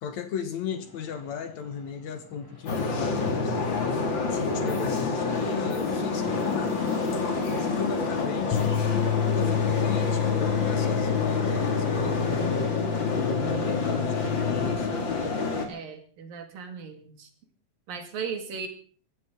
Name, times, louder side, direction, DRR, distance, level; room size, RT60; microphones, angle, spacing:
voice 1, 0.0-6.8 7.6-8.6 9.3-14.9, left 7 dB, 65° left, 2.2 m, -36 dB
sound 1, 0.7-14.9, left 2 dB, 5° left, 3.1 m, -43 dB
sound 2, 2.7-15.7, left 4 dB, 35° left, 2.9 m, -28 dB
sound 3, 8.5-14.8, left 10 dB, 85° left, 3.7 m, -29 dB
voice 2, 15.7-17.3 17.9-18.7, right 6 dB, 80° right, 4.2 m, -37 dB
23.0 x 15.5 x 3.9 m
omnidirectional pair, 4.0 m